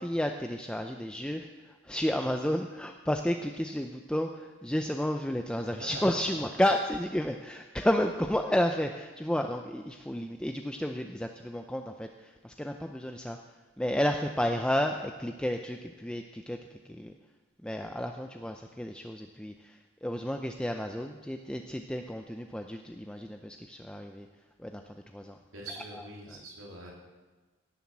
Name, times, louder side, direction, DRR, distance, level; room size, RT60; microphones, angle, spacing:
voice 1, 0.0-13.4 13.8-17.1 17.6-24.3 24.6-25.4 25.9-26.0, equal, 5° left, 4 dB, 0.4 m, -32 dB
voice 2, 25.5-26.9, right 2 dB, 70° right, -3 dB, 3.3 m, -44 dB
17.0 x 7.3 x 7.3 m, 1.3 s
head